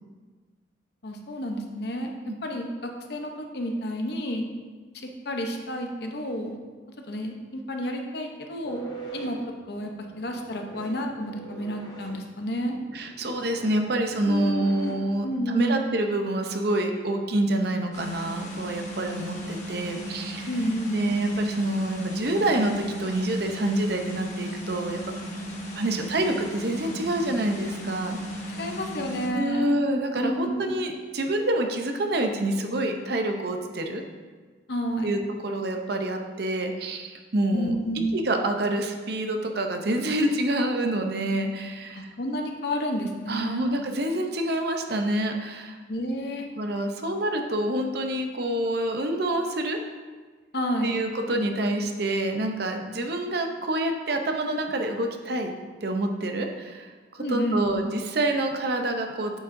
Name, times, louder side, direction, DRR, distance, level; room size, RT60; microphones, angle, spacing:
voice 1, 1.0-2.1 2.4-4.5 5.3-6.6 7.1-8.8 9.1-9.4 9.7-9.9 10.2-12.8 14.2-14.9 15.2-15.9 20.5-21.1 28.6-29.7 30.1-30.8 34.7-35.2 37.5-38.3 41.9-43.7 45.9-46.5 50.5-51.0 57.2-57.9, equal, 55° left, 3 dB, 0.8 m, -30 dB
sound 1, 8.6-15.3, right 3 dB, 20° left, 1.0 m, -43 dB
voice 2, 12.9-20.5 20.9-25.1 25.7-28.2 29.3-34.0 35.0-37.7 38.1-42.1 43.3-45.8 46.6-49.8 50.8-55.5 55.8-59.4, right 1 dB, 55° right, 4 dB, 0.6 m, -27 dB
sound 2, 17.9-29.3, equal, 40° left, 1.2 m, -36 dB
8.8 x 7.0 x 2.6 m, 1.4 s
head